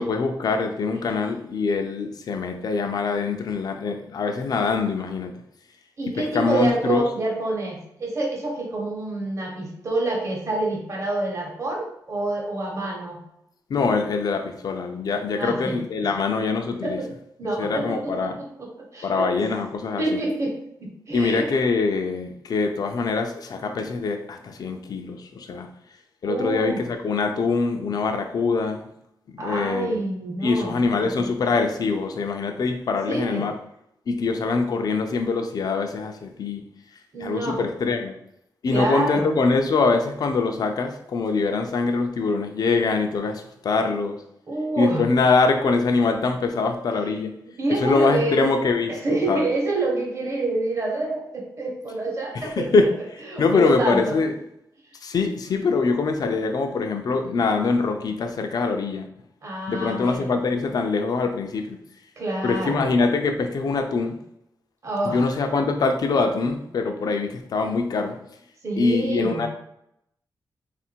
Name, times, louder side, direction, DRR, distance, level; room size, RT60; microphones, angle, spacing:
voice 1, 0.0-5.3 6.2-7.1 13.7-17.0 17.6-18.4 19.0-20.2 21.1-25.7 26.2-28.9 29.4-30.0 30.4-33.5 34.1-36.6 37.2-38.1 38.6-44.2 44.8-47.3 47.7-49.5 52.3-52.9 53.4-54.3 55.0-59.1 59.7-61.8 62.4-64.2 65.0-68.2 68.8-69.5, left 4 dB, 55° left, 5 dB, 0.5 m, -23 dB
voice 2, 6.0-13.2 15.4-15.8 16.0-16.1 16.8-17.1 17.4-19.4 20.0-21.5 26.3-26.8 29.4-31.3 33.1-33.4 37.1-37.6 38.7-39.3 44.5-45.0 47.4-48.4 48.9-52.9 53.3-54.2 59.4-60.3 62.2-62.9 64.8-65.3 68.6-69.5, right 2 dB, 40° right, -2 dB, 1.0 m, -27 dB
3.5 x 2.5 x 4.4 m, 0.76 s
wide cardioid pair, 145°, 8 cm